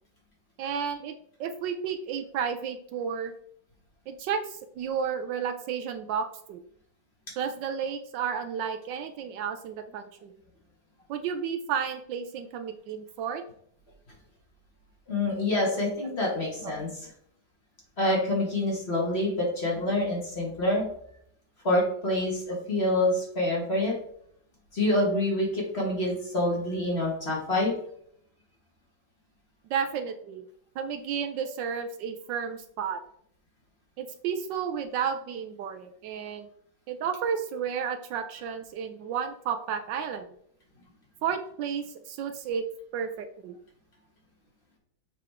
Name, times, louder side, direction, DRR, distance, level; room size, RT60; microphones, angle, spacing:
voice 1, 0.6-1.1 1.4-3.3 4.1-6.6 7.4-10.3 11.1-13.4 16.6-16.7 29.7-30.4 30.8-33.0 34.0-36.5 36.9-40.3 41.2-42.7 42.9-43.6, right 7 dB, 75° right, 7 dB, 1.2 m, -32 dB
voice 2, 15.1-17.1 18.0-20.8 21.6-23.9 24.7-27.7 31.4-31.5, left 1 dB, 35° left, -3 dB, 1.8 m, -27 dB
6.8 x 4.9 x 3.5 m, 0.68 s
omnidirectional pair, 2.1 m